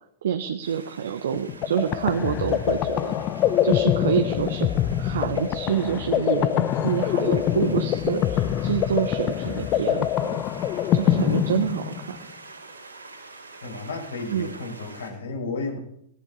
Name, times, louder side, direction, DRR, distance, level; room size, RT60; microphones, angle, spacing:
voice 1, 0.2-3.1 3.6-10.4 10.9-12.2 14.3-14.5, right 9 dB, 65° right, 7 dB, 1.4 m, -27 dB
sound 1, 0.6-15.1, right 3 dB, 85° right, 4.6 m, -46 dB
sound 2, 1.3-12.2, left 11 dB, 35° left, 1.0 m, -24 dB
voice 2, 13.6-15.8, left 3 dB, 70° left, 3 dB, 5.4 m, -33 dB
18.0 x 17.5 x 4.3 m, 0.71 s
figure-of-eight pair, 100°, 0 cm